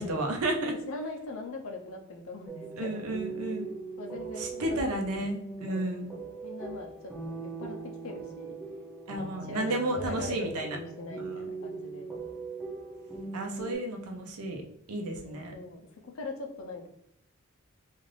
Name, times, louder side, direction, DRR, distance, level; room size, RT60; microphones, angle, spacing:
voice 1, 0.0-0.7 2.8-3.7 4.4-6.1 9.1-10.8 11.1-11.5 13.3-14.6 14.9-15.5, right 1 dB, 85° right, 3 dB, 0.6 m, -32 dB
voice 2, 0.7-3.0 4.0-4.8 5.7-6.0 6.4-8.6 9.2-12.1 15.2-16.9, left 2 dB, 70° left, 1 dB, 0.6 m, -41 dB
sound 1, 2.5-13.8, right 3 dB, 5° right, 0.5 m, -40 dB
2.5 x 2.4 x 3.2 m, 0.74 s
head